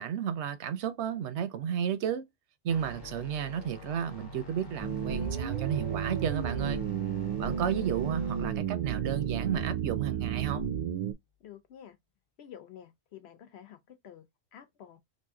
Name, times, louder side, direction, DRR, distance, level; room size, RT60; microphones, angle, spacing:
voice 1, 0.0-2.2 2.6-6.8 7.4-10.7, right 9 dB, 80° right, 0.9 m, -33 dB
sound 1, 2.7-10.8, left 3 dB, 25° left, 0.6 m, -46 dB
sound 2, 4.8-11.1, right 8 dB, 60° right, 0.4 m, -32 dB
voice 2, 11.4-12.0 12.4-14.3 14.5-15.0, left 9 dB, 70° left, 1.0 m, -50 dB
3.1 x 2.6 x 3.6 m
omnidirectional pair, 1.1 m